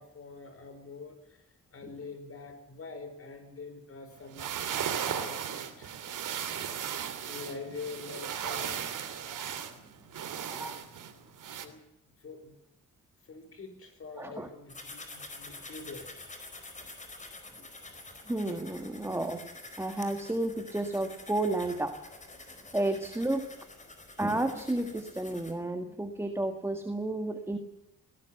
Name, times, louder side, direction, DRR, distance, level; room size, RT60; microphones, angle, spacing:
voice 1, 0.0-6.0 7.2-9.0 11.5-11.8 12.2-12.5 13.2-16.7 17.0-17.2 17.6-17.7, left 4 dB, 45° left, 8 dB, 5.4 m, -45 dB
sound 1, 4.2-11.7, right 8 dB, 70° right, 2.9 m, -36 dB
voice 2, 10.5-10.8 14.2-14.5 18.3-19.4 19.8-22.0 22.7-23.5 24.1-27.6, right 2 dB, 10° right, 6 dB, 1.7 m, -32 dB
sound 2, 14.7-25.5, left 2 dB, 20° left, 4.6 m, -48 dB
21.5 x 17.5 x 7.9 m, 0.86 s
cardioid pair, 140°, 33 cm